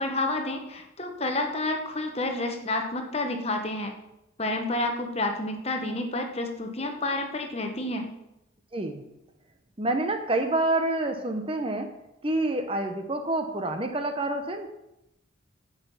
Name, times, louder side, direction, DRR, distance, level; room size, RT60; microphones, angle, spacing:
voice 1, 0.0-3.9 4.4-8.1, left 2 dB, 30° left, 4 dB, 1.1 m, -29 dB
voice 2, 8.7-9.0 9.8-11.9 12.2-14.7, right 2 dB, 25° right, 6 dB, 0.8 m, -27 dB
8.6 x 5.7 x 7.1 m, 0.88 s
head